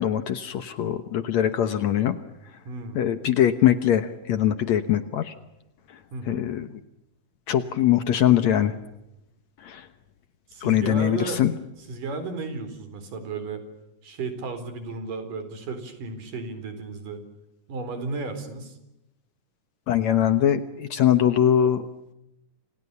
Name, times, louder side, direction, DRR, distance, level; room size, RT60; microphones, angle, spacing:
voice 1, 0.0-2.2 3.0-5.3 6.3-6.7 7.5-8.7 9.6-9.9 10.6-11.5 19.9-21.8, left 10 dB, 65° left, 11 dB, 2.3 m, -22 dB
voice 2, 2.7-3.0 6.1-6.5 10.5-11.4 11.9-13.7 14.0-17.2 17.7-18.8, right 3 dB, 80° right, 10 dB, 5.7 m, -34 dB
29.5 x 27.0 x 6.9 m, 0.91 s
omnidirectional pair, 3.7 m